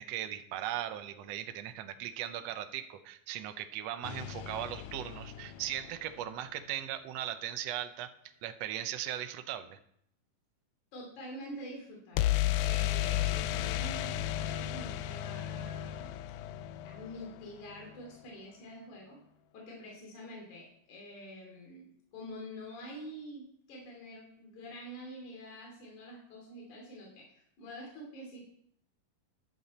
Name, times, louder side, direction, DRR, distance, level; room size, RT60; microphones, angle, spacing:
voice 1, 0.0-8.1 8.4-9.8, right 12 dB, 70° right, 9 dB, 1.6 m, -38 dB
sound 1, 4.0-6.1 12.2-17.9, left 13 dB, 80° left, 2.1 m, -34 dB
voice 2, 10.9-16.2 16.8-19.2 19.5-28.4, equal, 65° left, -1 dB, 4.1 m, -47 dB
12.0 x 10.5 x 4.2 m, 0.70 s
omnidirectional pair, 3.7 m